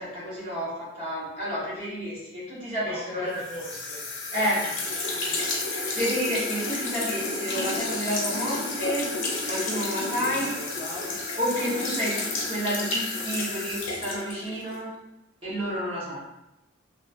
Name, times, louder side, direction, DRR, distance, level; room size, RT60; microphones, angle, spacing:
voice 1, 0.0-3.4 4.3-4.6 5.9-9.1 9.4-10.5 11.4-14.9 15.4-16.2, equal, 25° right, -9 dB, 1.0 m, -30 dB
voice 2, 2.8-4.0 4.4-5.4 10.2-11.2, equal, 5° left, -12 dB, 0.6 m, -41 dB
sound 1, 3.4-14.8, left 2 dB, 75° left, 0.7 m, -31 dB
3.0 x 2.2 x 2.5 m, 0.92 s
head